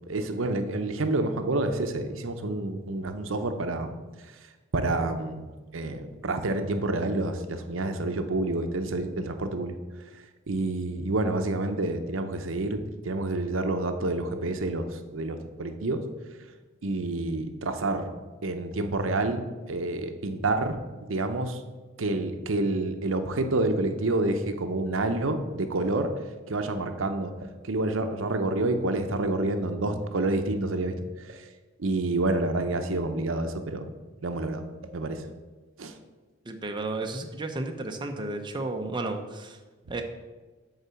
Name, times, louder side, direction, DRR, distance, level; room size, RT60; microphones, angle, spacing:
voice 1, 0.1-3.9 4.7-9.7 10.5-16.0 16.8-18.1 18.4-19.4 19.7-21.6 22.0-26.1 26.5-27.3 27.6-30.9 31.3-31.5 31.8-33.9 34.2-34.6 34.9-35.3 35.8-35.9, right 2 dB, 75° right, 7 dB, 0.7 m, -28 dB
voice 2, 36.5-39.6 39.9-40.0, right 2 dB, 25° right, 4 dB, 0.6 m, -33 dB
8.4 x 4.0 x 6.8 m, 1.3 s
head